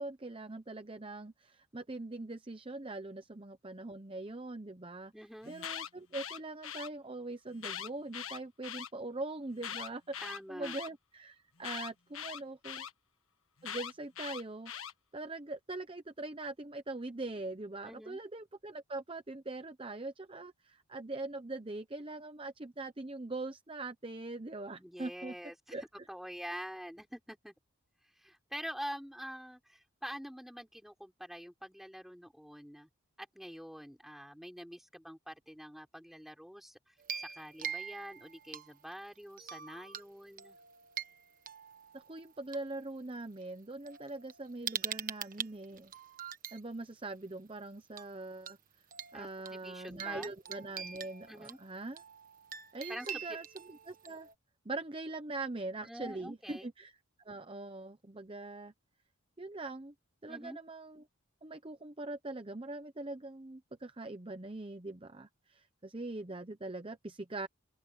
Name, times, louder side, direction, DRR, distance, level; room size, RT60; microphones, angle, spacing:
voice 1, 0.0-5.1 5.5-12.9 13.6-14.7 15.1-25.3 25.7-25.8 41.9-45.9 46.5-48.6 49.1-52.0 52.7-54.3 54.6-57.0 57.2-58.7 59.4-59.9 60.2-61.1 61.4-67.5, right 2 dB, 25° right, 0.8 m, -42 dB
voice 2, 5.1-5.5 10.2-10.8 17.8-18.2 24.8-25.5 26.1-27.5 28.2-32.9 33.2-40.6 49.1-50.3 51.3-51.6 52.9-53.4 55.8-56.7 60.3-60.6, equal, ahead, 5.6 m, -46 dB
Alarm, 5.4-6.9 7.6-8.9 9.6-10.9 11.6-12.9 13.6-14.9, left 9 dB, 70° left, 1.4 m, -41 dB
sound 1, 37.0-38.9 39.4-40.1 40.4-42.6 43.4-43.5 43.9-46.6 48.0-48.1 48.5-48.6 48.9-54.3, right 8 dB, 40° right, 1.4 m, -44 dB
open air
head